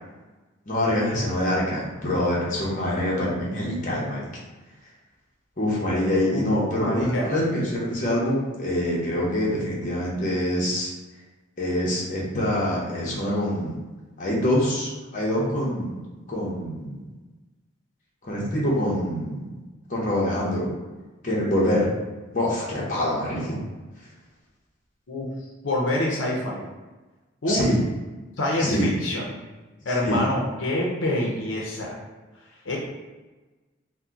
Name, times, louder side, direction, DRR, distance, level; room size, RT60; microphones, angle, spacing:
voice 1, 0.7-4.3 5.6-10.9 11.6-13.8 14.2-15.9 16.3-17.1 18.2-19.5 19.9-20.7 21.2-21.9 22.3-23.6 27.5-27.8 28.6-28.9 30.0-30.2, left 1 dB, 40° left, -5 dB, 0.8 m, -25 dB
voice 2, 6.8-7.3 25.1-25.3 25.6-26.7 27.4-27.6 28.4-29.4 29.9-32.0 32.6-32.8, left 1 dB, 75° left, -3 dB, 0.6 m, -26 dB
2.8 x 2.1 x 3.5 m, 1.2 s
head